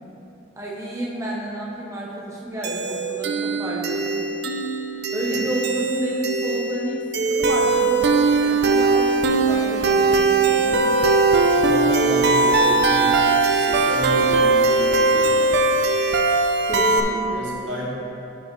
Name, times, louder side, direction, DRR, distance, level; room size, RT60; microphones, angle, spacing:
voice 1, 0.6-4.2 5.1-11.1 16.6-17.4, right 1 dB, 15° right, -4 dB, 0.8 m, -31 dB
sound 1, 2.6-17.0, right 3 dB, 60° right, 0.6 m, -20 dB
voice 2, 11.5-13.3 13.6-15.5 17.1-17.9, equal, 80° right, -4 dB, 1.8 m, -31 dB
10.0 x 4.9 x 4.6 m, 3.0 s
head